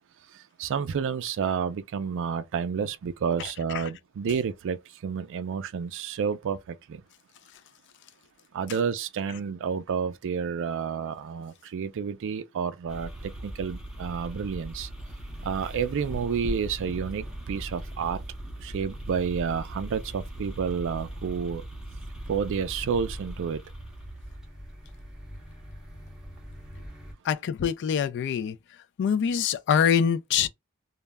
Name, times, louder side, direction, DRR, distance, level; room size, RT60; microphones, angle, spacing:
voice 1, 0.3-7.0 8.5-14.9 15.4-18.2 18.6-21.6 22.3-23.6, right 6 dB, 60° right, 0.4 m, -30 dB
voice 2, 3.4-3.8 4.3-4.4 27.2-28.6 29.0-30.5, left 7 dB, 55° left, 0.3 m, -25 dB
sound 1, 12.9-27.1, right 1 dB, 5° right, 0.6 m, -39 dB
2.2 x 2.1 x 3.3 m
head